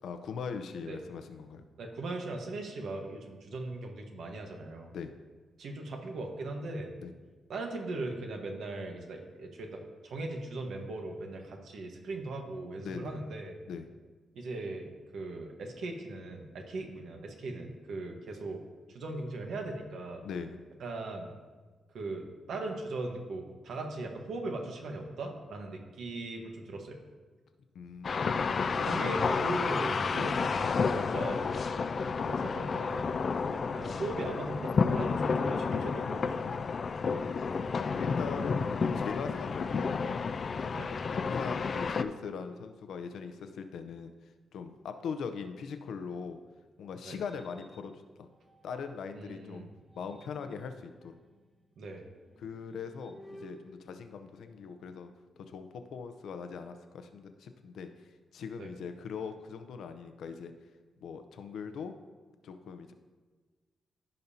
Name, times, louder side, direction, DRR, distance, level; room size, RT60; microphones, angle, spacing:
voice 1, 0.0-1.6 4.9-5.1 7.0-7.1 12.8-13.2 13.7-13.9 20.2-20.6 27.7-29.1 29.4-29.5 35.1-35.2 38.0-40.3 41.1-44.1 44.5-46.4 46.8-48.3 48.6-49.7 50.0-51.2 52.4-55.1 55.4-57.9 58.3-60.5 61.0-61.9 62.4-62.9, left 6 dB, 85° left, 8 dB, 0.7 m, -41 dB
voice 2, 1.8-4.9 5.6-6.9 7.5-13.6 14.3-18.6 18.9-20.2 20.8-21.3 21.9-27.0 28.7-31.4 32.2-33.2 33.5-36.5 40.7-40.9 47.0-47.2 49.1-49.7 51.8-52.0 58.6-58.7, right 2 dB, 75° right, 2 dB, 1.3 m, -39 dB
sound 1, 28.0-42.0, left 5 dB, 45° left, 0.4 m, -31 dB
sound 2, 46.4-49.2 49.7-54.9, equal, ahead, 1.2 m, -57 dB
15.0 x 5.3 x 2.8 m, 1.4 s
cardioid pair, 110°, 0 cm